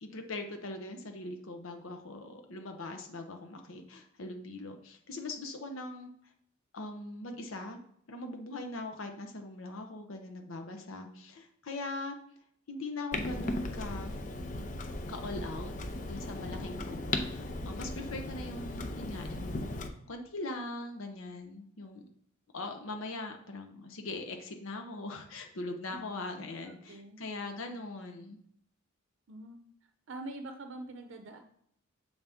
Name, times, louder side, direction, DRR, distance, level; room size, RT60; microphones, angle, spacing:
voice 1, 0.0-6.1 6.7-7.8 8.1-12.1 12.7-14.1 15.1-15.7 16.0-22.0 22.5-28.4, left 2 dB, 80° left, 4 dB, 0.7 m, -41 dB
Clock, 13.1-19.9, left 2 dB, 40° left, 0.6 m, -37 dB
voice 2, 26.6-27.2 29.3-29.6 30.1-31.4, right 2 dB, 65° right, 6 dB, 0.6 m, -44 dB
7.0 x 4.0 x 3.5 m, 0.70 s
head